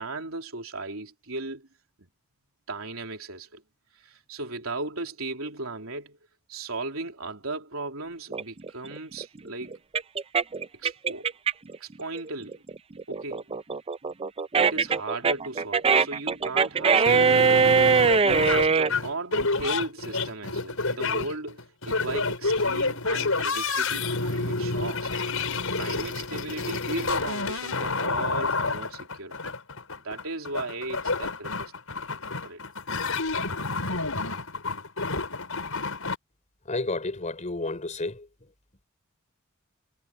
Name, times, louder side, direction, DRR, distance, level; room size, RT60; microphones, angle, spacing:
voice 1, 0.0-1.7 2.0-2.1 2.7-3.6 3.9-6.2 6.5-9.8 10.7-11.3 11.8-12.6 13.1-13.5 14.6-25.1 25.7-29.5 30.0-31.7 32.4-32.6, right 2 dB, 85° right, 3.4 m, -36 dB
sound 1, 8.3-11.8 12.2-18.9, right 5 dB, 30° right, 0.5 m, -22 dB
sound 2, 17.1-36.2, left 3 dB, 80° left, 5.8 m, -29 dB
voice 2, 36.7-38.3, left 2 dB, 35° left, 4.0 m, -31 dB
head